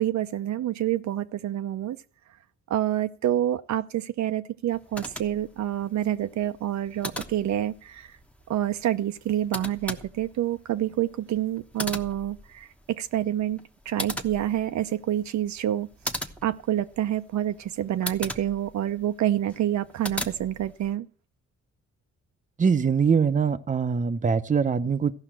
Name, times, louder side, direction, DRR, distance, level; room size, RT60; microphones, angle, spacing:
voice 1, 0.0-2.0 2.7-8.1 8.5-12.7 13.0-13.6 13.9-15.9 16.4-21.1, right 12 dB, 65° right, 0.7 m, -27 dB
sound 1, 4.7-21.0, equal, 5° left, 1.1 m, -39 dB
voice 2, 22.6-25.1, right 6 dB, 25° right, 0.7 m, -23 dB
14.5 x 5.7 x 7.4 m
cardioid pair, 90°, 30 cm